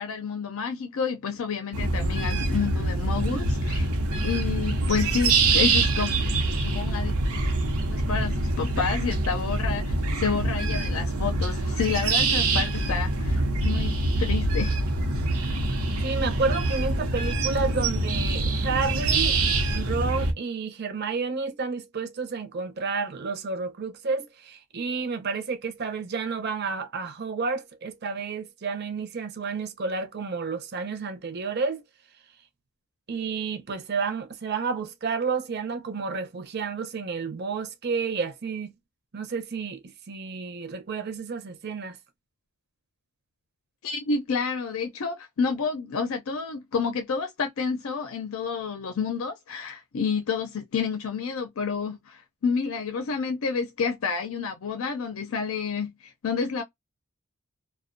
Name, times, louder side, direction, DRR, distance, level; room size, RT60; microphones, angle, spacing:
voice 1, 0.0-3.9 4.2-6.1 6.6-7.1 7.9-14.8 43.8-56.6, left 5 dB, 70° left, 0.4 m, -29 dB
sound 1, 1.7-20.3, right 2 dB, 90° right, 0.7 m, -25 dB
voice 2, 16.0-19.4 19.7-31.8 33.1-38.7 39.1-42.0, right 4 dB, 50° right, 0.6 m, -30 dB
2.5 x 2.1 x 2.5 m
head